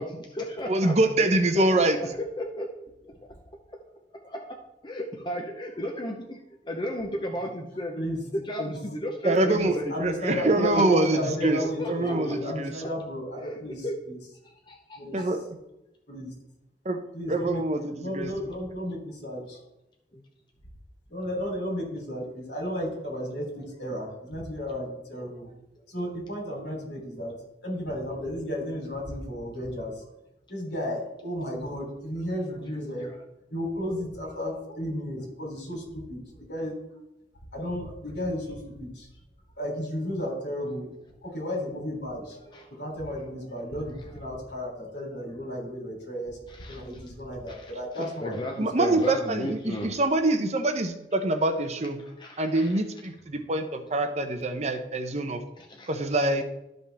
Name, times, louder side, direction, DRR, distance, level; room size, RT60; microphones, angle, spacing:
voice 1, 0.0-3.1 3.7-3.8 4.2-4.6 4.8-8.0 8.3-9.9 10.5-11.5 11.8-12.4 12.8-12.9 13.4-14.0 14.4-15.3 20.1-20.2 32.7-33.2 42.5-42.7 44.0-44.2 46.5-47.1 47.5-49.9 52.2-52.8 55.6-56.0, equal, 25° left, 1 dB, 0.7 m, -35 dB
voice 2, 0.7-2.0 9.2-9.7 10.0-12.8 15.1-15.4 16.8-17.0 17.3-18.5 48.6-52.0 52.4-55.4 55.9-56.4, right 2 dB, 40° right, 6 dB, 0.7 m, -25 dB
voice 3, 9.5-14.2 15.0-15.2 16.1-16.3 17.1-19.6 21.1-25.5 25.9-27.3 27.6-29.9 30.5-33.1 33.5-36.2 36.5-36.7 37.5-39.1 39.6-40.9 41.2-46.4 46.7-48.9, equal, 75° left, -1 dB, 3.1 m, -33 dB
12.5 x 5.3 x 3.4 m, 0.87 s
head